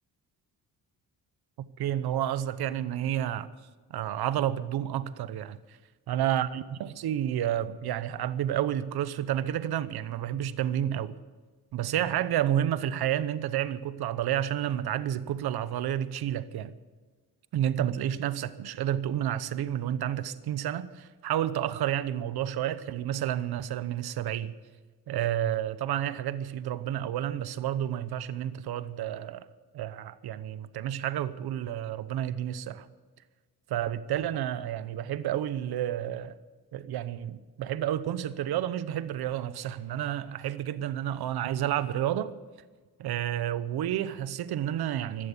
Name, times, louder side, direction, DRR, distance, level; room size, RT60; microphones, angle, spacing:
voice 1, 1.8-3.5 3.9-5.8 6.1-11.2 11.7-16.7 17.5-24.5 25.1-29.4 29.7-32.9 33.7-36.3 36.7-42.3 43.0-45.3, right 11 dB, 85° right, 0.9 m, -30 dB
15.0 x 12.0 x 7.2 m
cardioid pair, 125°, 37 cm